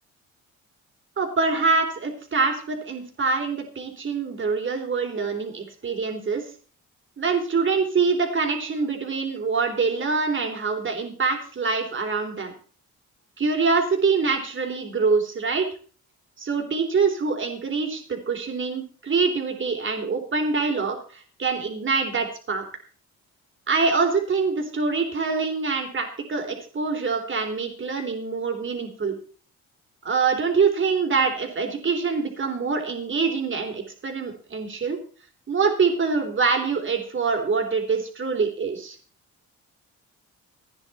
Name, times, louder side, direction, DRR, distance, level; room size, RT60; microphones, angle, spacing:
voice 1, 1.2-6.4 7.2-12.5 13.4-15.7 16.4-22.6 23.7-29.2 30.0-35.0 35.5-39.0, right 4 dB, 40° right, 4 dB, 3.5 m, -25 dB
15.5 x 9.7 x 4.3 m, 0.42 s
cardioid pair, 90°, 30 cm